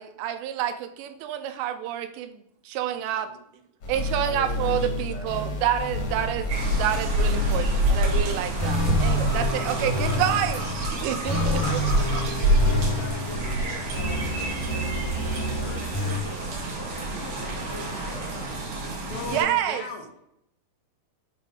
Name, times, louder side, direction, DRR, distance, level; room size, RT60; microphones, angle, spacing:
voice 1, 0.0-2.4 2.7-3.3 3.9-10.7 10.9-11.8 19.3-19.8, right 11 dB, 90° right, 8 dB, 2.8 m, -28 dB
voice 2, 2.9-3.5 11.0-11.9 19.0-20.2, left 3 dB, 70° left, 1 dB, 2.4 m, -42 dB
sound 1, 3.8-16.2, left 1 dB, 50° left, 2.1 m, -29 dB
voice 3, 4.2-5.3 9.3-10.3 11.4-15.1 15.6-18.7, left 3 dB, 90° left, -3 dB, 1.5 m, -42 dB
sound 2, 6.5-19.4, right 1 dB, 60° right, 2.6 m, -27 dB
8.1 x 3.3 x 5.2 m, 0.76 s
omnidirectional pair, 5.0 m